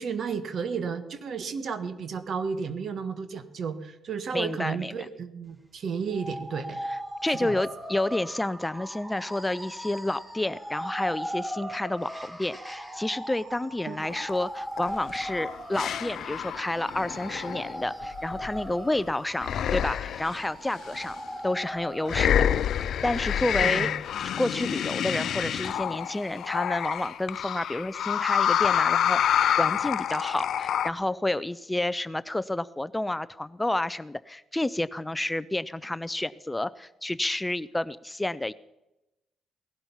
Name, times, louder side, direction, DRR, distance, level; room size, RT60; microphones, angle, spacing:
voice 1, 0.0-6.8 7.3-7.6 13.9-14.0 23.6-23.9, right 6 dB, 55° right, 11 dB, 1.5 m, -33 dB
voice 2, 4.3-4.9 7.2-21.2 21.4-22.4 23.0-23.9 24.2-38.5, left 1 dB, 10° left, 16 dB, 0.4 m, -30 dB
sound 1, 6.1-22.2, equal, 10° right, 1.9 m, -39 dB
sound 2, 14.1-14.4 14.8-19.0 19.4-20.4 20.9-21.1 22.1-30.9, left 9 dB, 65° left, 0.5 m, -27 dB
18.0 x 11.5 x 5.6 m, 0.96 s
cardioid pair, 90°, 0 cm